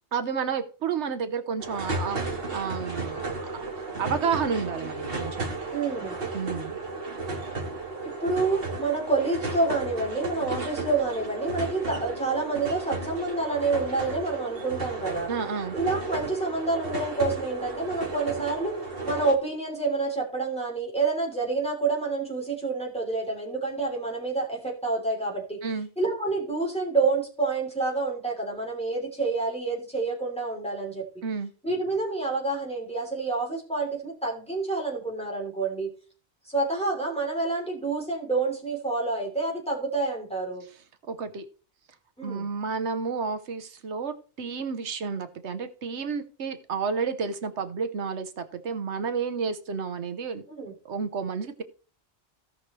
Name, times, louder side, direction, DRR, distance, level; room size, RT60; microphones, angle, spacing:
voice 1, 0.1-5.5 6.3-6.8 15.3-15.8 25.6-25.9 31.2-31.5 41.1-41.5 42.2-50.4 50.8-51.6, right 5 dB, 80° right, 10 dB, 1.2 m, -31 dB
sound 1, 1.6-19.4, right 3 dB, 55° right, 2.0 m, -34 dB
voice 2, 5.7-6.2 8.0-15.3 15.7-18.7 19.0-25.6 26.0-31.1 31.6-35.9 36.5-40.7 42.2-42.5 50.5-50.7, right 3 dB, 5° left, -2 dB, 3.4 m, -28 dB
17.0 x 6.0 x 3.2 m, 0.37 s
omnidirectional pair, 1.1 m